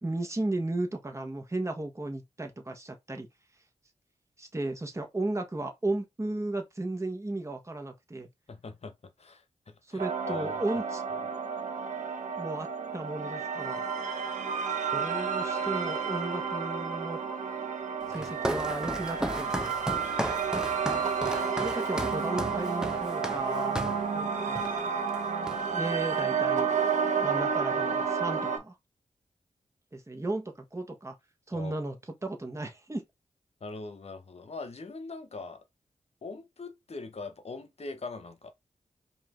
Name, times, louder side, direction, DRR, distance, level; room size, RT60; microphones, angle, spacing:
voice 1, 0.0-3.3 4.4-8.3 9.9-11.0 12.4-13.8 14.9-17.2 18.1-19.7 21.6-23.8 24.1-24.6 25.7-26.9 27.2-28.7 29.9-31.1 31.5-33.0, right 2 dB, 25° right, 1.3 m, -35 dB
voice 2, 8.5-8.9 9.2-10.6 18.1-18.3 31.5-31.8 33.6-35.6 36.2-38.5, left 3 dB, 55° left, 1.0 m, -42 dB
sound 1, 10.0-28.6, right 6 dB, 80° right, 1.2 m, -31 dB
Walk footsteps, 18.1-24.1 24.5-24.8 25.1-25.9, right 1 dB, 5° right, 0.9 m, -35 dB
4.9 x 2.8 x 3.7 m
cardioid pair, 50°, 12 cm